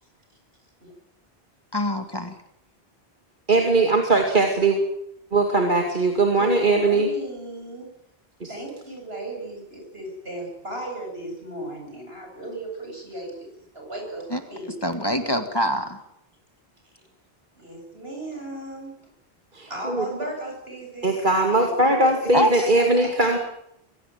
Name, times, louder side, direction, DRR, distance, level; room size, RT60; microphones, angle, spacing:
voice 1, 1.7-2.3 14.3-14.4 14.8-16.0 22.3-22.5, equal, 25° left, 7 dB, 1.9 m, -24 dB
voice 2, 3.5-4.8 5.3-7.1 8.4-8.5 19.5-20.1 21.0-23.4, right 2 dB, 50° right, 3 dB, 2.7 m, -20 dB
voice 3, 6.3-7.9 8.5-13.5 13.7-14.7 17.6-18.9 19.7-22.3 22.6-23.3, right 1 dB, 75° right, 1 dB, 8.3 m, -36 dB
24.0 x 17.5 x 9.3 m, 0.79 s
omnidirectional pair, 1.0 m